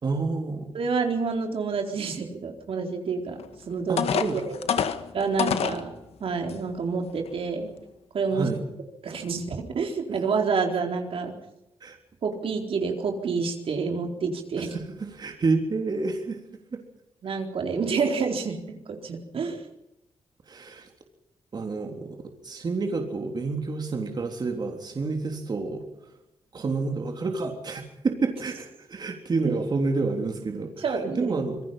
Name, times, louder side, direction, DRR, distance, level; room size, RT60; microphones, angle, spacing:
voice 1, 0.0-0.7 3.9-4.5 8.3-8.6 11.8-12.0 14.7-16.4 16.7-16.8 20.5-20.9 21.5-25.8 26.5-31.6, right 3 dB, 45° right, 3 dB, 3.4 m, -29 dB
voice 2, 0.7-3.4 3.7-4.5 5.1-5.9 6.2-7.7 8.1-8.5 9.0-11.3 12.2-14.8 17.2-19.6 30.8-31.4, right 5 dB, 65° right, 3 dB, 4.1 m, -28 dB
sound 1, 3.4-3.5 4.0-5.8 6.5-6.6 7.1-7.3, left 7 dB, 80° left, 1.8 m, -26 dB
26.5 x 22.0 x 5.8 m, 0.89 s
wide cardioid pair, 120°, 10 cm